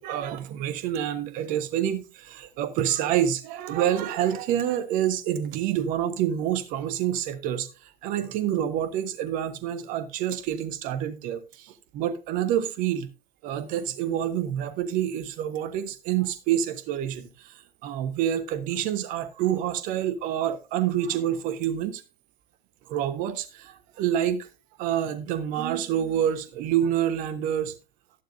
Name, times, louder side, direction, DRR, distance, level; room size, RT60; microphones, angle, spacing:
voice 1, 0.0-13.1 13.4-22.0 22.9-24.5 24.8-27.7, right 10 dB, 30° right, 1.1 m, -27 dB
11.5 x 11.5 x 2.6 m
figure-of-eight pair, 105°, 30 cm